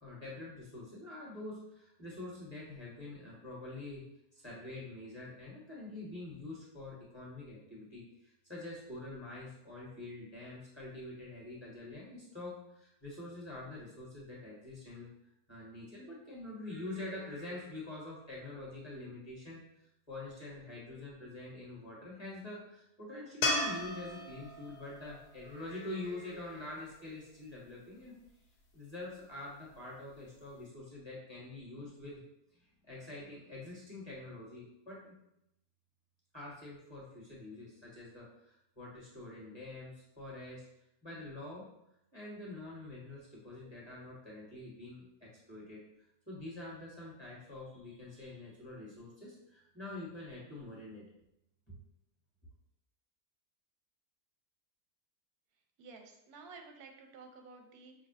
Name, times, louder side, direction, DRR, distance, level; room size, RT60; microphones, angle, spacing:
voice 1, 0.0-4.0 4.3-15.1 15.5-28.1 28.7-32.2 32.5-35.1 36.3-40.7 41.0-41.6 42.1-45.8 46.3-51.0 51.7-51.8, left 2 dB, 20° left, -6 dB, 1.1 m, -46 dB
sound 1, 23.4-26.7 29.9-30.0, left 2 dB, 90° left, 1.2 m, -36 dB
voice 2, 55.8-57.9, right 4 dB, 90° right, 4 dB, 1.1 m, -52 dB
5.3 x 2.3 x 2.7 m, 0.81 s
omnidirectional pair, 1.6 m